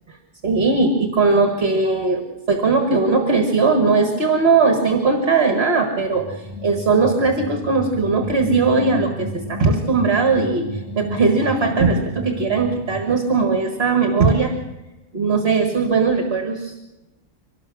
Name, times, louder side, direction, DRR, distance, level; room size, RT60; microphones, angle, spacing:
voice 1, 0.4-14.5 15.1-16.8, right 4 dB, 50° right, 5 dB, 2.0 m, -19 dB
sound 1, 6.1-13.5, left 1 dB, 30° right, 2.5 m, -33 dB
24.0 x 19.0 x 6.2 m, 1.0 s
omnidirectional pair, 1.3 m